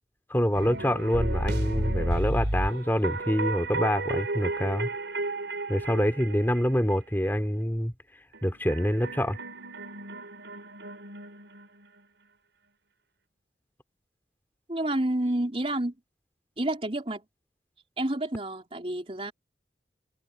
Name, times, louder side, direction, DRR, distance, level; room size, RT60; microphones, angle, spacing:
voice 1, 0.3-4.9 5.7-7.9 8.4-9.4, equal, 10° left, 3.1 m, -26 dB
sound 1, 0.5-6.9 8.3-12.0, right 1 dB, 85° right, 5.2 m, -32 dB
voice 2, 14.7-15.9 16.6-17.2 18.0-19.3, right 1 dB, 30° right, 3.9 m, -29 dB
head